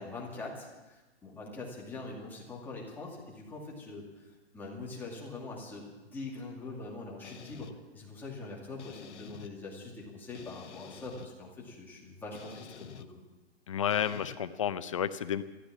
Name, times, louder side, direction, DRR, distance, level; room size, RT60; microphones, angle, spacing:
voice 1, 0.0-7.7 7.9-13.1, left 3 dB, 5° left, -4 dB, 2.2 m, -43 dB
sound 1, 7.2-7.7 8.8-9.5 10.3-11.3 12.3-13.1 13.9-14.4, left 7 dB, 85° left, 1.1 m, -48 dB
voice 2, 13.7-15.4, left 9 dB, 30° left, 12 dB, 0.5 m, -31 dB
13.5 x 13.5 x 7.4 m, 1.1 s
hypercardioid pair, 165°, 34 cm